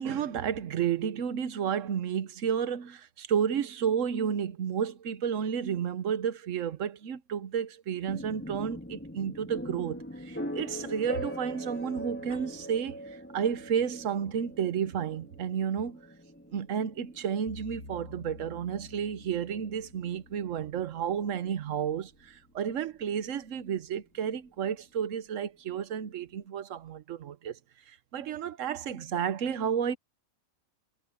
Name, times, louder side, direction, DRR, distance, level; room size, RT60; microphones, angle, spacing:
voice 1, 0.0-16.1 16.5-27.6 27.9-30.0, right 8 dB, 65° right, 1.2 m, -31 dB
sound 1, 8.1-21.8, equal, 10° left, 2.9 m, -42 dB
sound 2, 17.5-22.6, left 2 dB, 85° left, 7.2 m, -50 dB
omnidirectional pair, 1.5 m